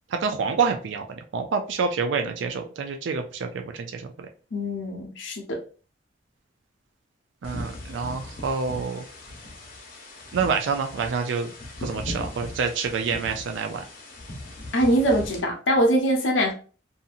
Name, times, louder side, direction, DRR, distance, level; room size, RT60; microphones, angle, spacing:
voice 1, 0.1-4.3 7.4-9.1 10.3-11.5 11.8-13.8, right 5 dB, 70° right, 5 dB, 0.4 m, -27 dB
voice 2, 4.5-5.6 14.7-16.5, equal, 85° left, 2 dB, 0.7 m, -23 dB
sound 1, 7.4-15.4, left 1 dB, 50° left, 0.8 m, -39 dB
2.7 x 2.6 x 2.4 m, 0.38 s
head